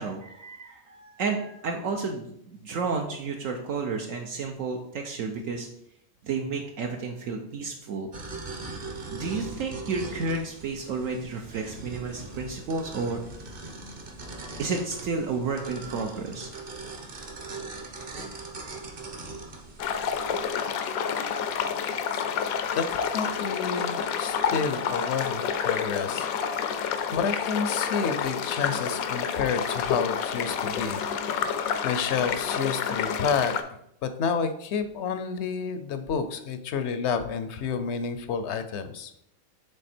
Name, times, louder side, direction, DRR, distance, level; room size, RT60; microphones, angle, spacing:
voice 1, 0.0-5.7 6.2-8.1 9.1-13.2 14.6-16.5, right 4 dB, 70° right, 2 dB, 1.0 m, -31 dB
sound 1, 8.1-20.5, right 3 dB, 45° right, 1.0 m, -40 dB
sound 2, 19.8-33.6, left 7 dB, 80° left, 1.1 m, -29 dB
voice 2, 22.8-26.3 26.6-31.0 31.8-33.5 34.0-39.2, left 6 dB, 65° left, 10 dB, 0.8 m, -30 dB
6.9 x 3.5 x 4.3 m, 0.73 s
omnidirectional pair, 1.5 m